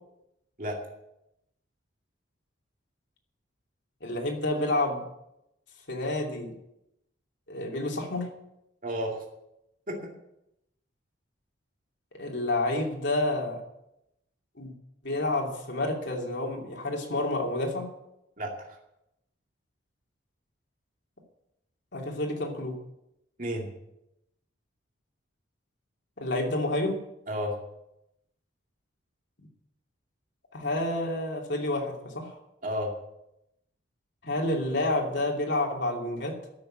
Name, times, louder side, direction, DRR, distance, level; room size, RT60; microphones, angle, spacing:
voice 1, 4.0-5.0 5.9-6.5 7.5-8.3 12.1-13.6 14.6-14.7 15.0-17.9 21.9-22.8 26.2-27.0 30.5-32.4 34.2-36.4, left 2 dB, 65° left, 0 dB, 2.8 m, -29 dB
voice 2, 8.8-9.2 9.9-10.0 18.4-18.8 23.4-23.7 27.3-27.6 32.6-32.9, equal, 40° right, -1 dB, 2.5 m, -32 dB
14.0 x 6.9 x 8.8 m, 0.85 s
head